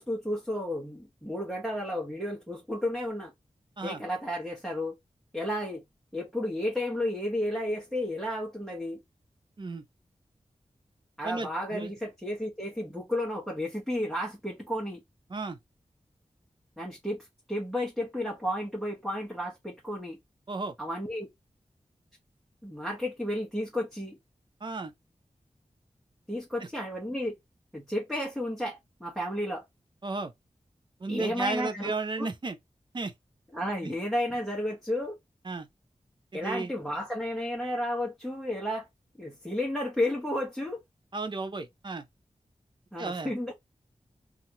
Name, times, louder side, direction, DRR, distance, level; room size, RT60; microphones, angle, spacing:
voice 1, 0.0-3.3 3.8-5.0 5.3-5.8 6.1-9.0 11.2-15.0 16.8-20.2 20.8-21.3 22.6-24.2 26.3-27.4 27.7-29.6 31.1-31.9 32.2-32.3 33.5-35.2 36.3-38.9 39.2-40.8 42.9-43.5, left 1 dB, ahead, 1.0 m, -32 dB
voice 2, 11.2-11.9 15.3-15.6 20.5-20.7 24.6-24.9 30.0-30.3 31.0-32.6 32.9-33.1 33.8-33.9 35.5-35.7 36.3-36.7 41.1-42.0 43.0-43.3, right 3 dB, 40° right, 0.6 m, -33 dB
2.9 x 2.5 x 2.8 m
wide cardioid pair, 100°, 12 cm